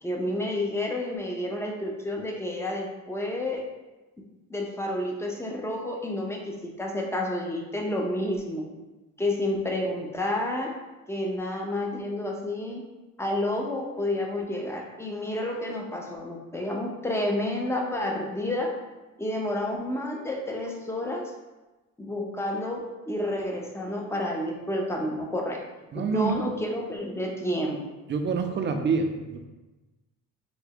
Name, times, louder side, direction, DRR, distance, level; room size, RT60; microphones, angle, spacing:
voice 1, 0.0-3.6 4.5-8.7 9.2-10.7 11.1-12.8 13.2-18.7 19.2-21.3 22.0-25.6 25.9-27.8, left 1 dB, 10° left, 0 dB, 0.6 m, -30 dB
voice 2, 25.9-26.5 28.1-29.5, right 5 dB, 40° right, 5 dB, 0.4 m, -27 dB
3.3 x 2.1 x 3.5 m, 1.1 s
cardioid pair, 90°, 30 cm